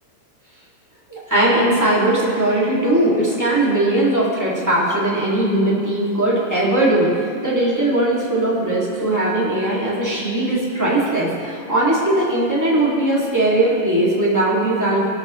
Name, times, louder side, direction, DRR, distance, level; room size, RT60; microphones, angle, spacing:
voice 1, 1.1-15.1, right 1 dB, 5° right, -7 dB, 1.6 m, -19 dB
18.0 x 8.2 x 3.1 m, 2.3 s
omnidirectional pair, 3.7 m